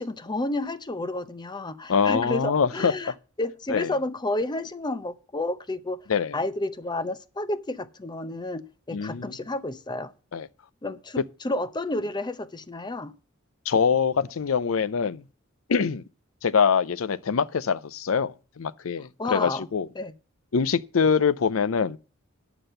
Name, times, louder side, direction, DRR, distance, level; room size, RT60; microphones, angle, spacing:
voice 1, 0.0-6.0 6.3-10.1 10.8-13.1 19.2-19.7 20.0-20.1, left 2 dB, 20° left, 0.6 m, -31 dB
voice 2, 1.9-2.9 3.7-3.9 6.1-6.4 8.9-9.4 10.3-10.5 13.7-15.2 15.7-16.0 16.4-19.9 20.5-22.0, left 6 dB, 80° left, 0.5 m, -24 dB
9.8 x 6.1 x 6.6 m
head